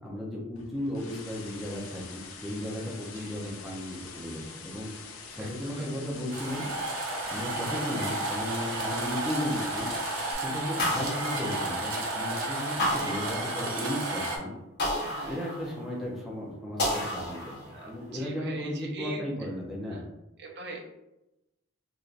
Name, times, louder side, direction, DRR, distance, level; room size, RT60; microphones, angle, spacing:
voice 1, 0.0-4.9 5.3-6.7 7.3-9.9 10.4-14.6 15.2-17.5 17.8-20.0, left 1 dB, ahead, -4 dB, 0.6 m, -35 dB
sound 1, 0.6-10.3, left 5 dB, 75° left, 0.5 m, -45 dB
voice 2, 5.4-5.9 7.7-8.0 10.6-10.9 15.2-15.5 17.7-19.2 19.8-20.0 20.4-20.8, right 3 dB, 55° right, 0 dB, 0.6 m, -42 dB
sound 2, 6.3-14.4, right 2 dB, 90° right, 0.8 m, -32 dB
sound 3, 10.8-12.1 12.8-14.0 14.8-16.0 16.8-18.0, left 1 dB, 55° left, 1.1 m, -32 dB
3.3 x 2.6 x 2.4 m, 0.92 s
head